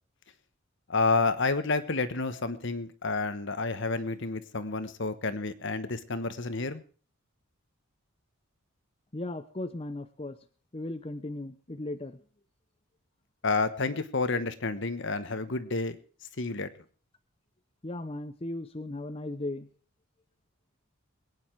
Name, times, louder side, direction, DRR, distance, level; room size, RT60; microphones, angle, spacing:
voice 1, 0.9-6.8 13.4-16.0 16.4-16.7, left 3 dB, 60° left, 12 dB, 1.3 m, -29 dB
voice 2, 9.1-10.4 10.7-12.2 17.8-19.7, left 2 dB, 25° left, 9 dB, 0.8 m, -37 dB
22.0 x 9.8 x 4.7 m, 0.41 s
head